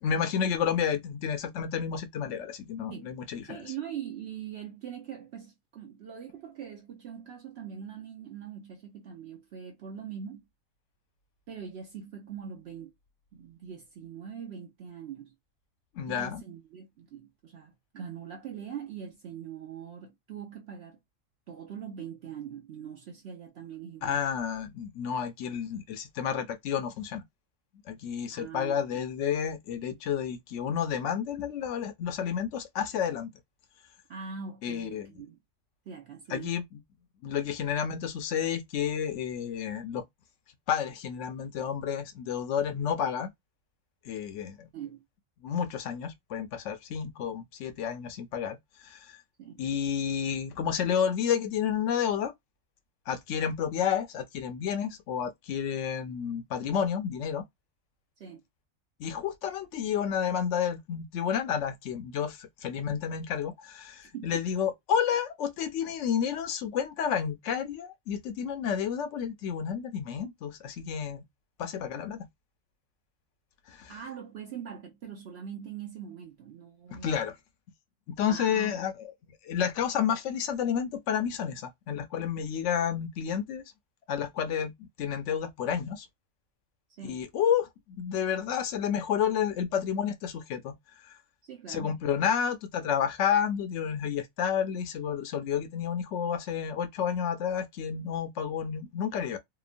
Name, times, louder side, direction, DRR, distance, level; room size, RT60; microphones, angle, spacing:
voice 1, 0.0-3.6 15.9-16.4 24.0-27.2 27.9-33.3 34.6-35.1 36.3-36.8 37.2-40.0 40.7-43.3 44.0-44.7 45.4-49.1 49.6-52.3 53.1-57.4 59.0-71.2 71.6-72.3 73.7-73.9 76.9-77.4 78.1-78.9 79.4-83.6 84.1-86.1 87.0-87.7 88.0-90.7 91.0-91.1 91.7-99.4, left 8 dB, 70° left, 0.9 m, -30 dB
voice 2, 3.4-10.5 11.5-12.9 13.3-15.3 16.1-21.0 21.5-24.2 28.3-29.0 34.1-35.4 35.9-36.5 44.7-45.0 49.4-49.6 58.2-58.4 64.1-64.6 73.9-77.2 78.3-78.8 87.0-87.2 91.4-92.0, right 8 dB, 60° right, 0.8 m, -42 dB
2.9 x 2.1 x 2.4 m
omnidirectional pair, 1.4 m